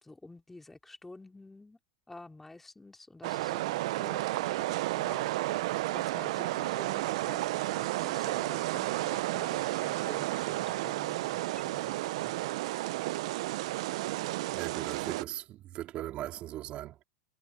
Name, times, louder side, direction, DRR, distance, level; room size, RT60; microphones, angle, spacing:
voice 1, 0.0-1.8 2.1-12.3, left 2 dB, 5° left, 2.9 m, -50 dB
sound 1, 3.2-15.2, right 18 dB, 65° right, 0.4 m, -32 dB
voice 2, 14.5-17.0, right 13 dB, 35° right, 3.9 m, -39 dB
supercardioid pair, 140°, 3 cm